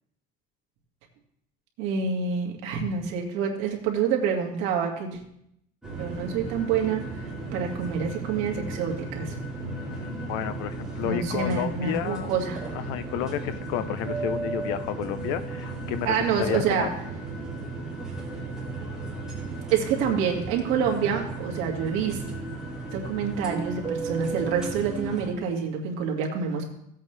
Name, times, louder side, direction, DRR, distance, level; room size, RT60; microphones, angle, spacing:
voice 1, 1.8-5.2 6.0-7.0 7.5-9.4 11.0-12.6 16.0-16.9 19.7-22.2 22.9-26.6, right 7 dB, 75° right, 0 dB, 2.0 m, -27 dB
sound 1, 5.8-25.3, right 3 dB, 5° right, 2.7 m, -35 dB
voice 2, 9.6-12.4 12.7-16.9, left 11 dB, 75° left, 12 dB, 0.7 m, -31 dB
15.5 x 8.2 x 3.3 m, 0.77 s
cardioid pair, 175°, 20 cm